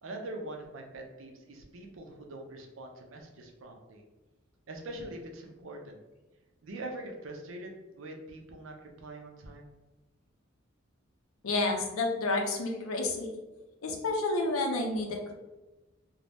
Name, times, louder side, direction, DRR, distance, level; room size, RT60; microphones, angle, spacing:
voice 1, 0.0-4.0 4.7-6.0 6.6-9.7, right 1 dB, 70° right, 2 dB, 0.5 m, -43 dB
voice 2, 11.4-13.3 13.8-15.3, left 2 dB, 90° left, 2 dB, 0.5 m, -30 dB
2.6 x 2.1 x 3.2 m, 1.1 s
head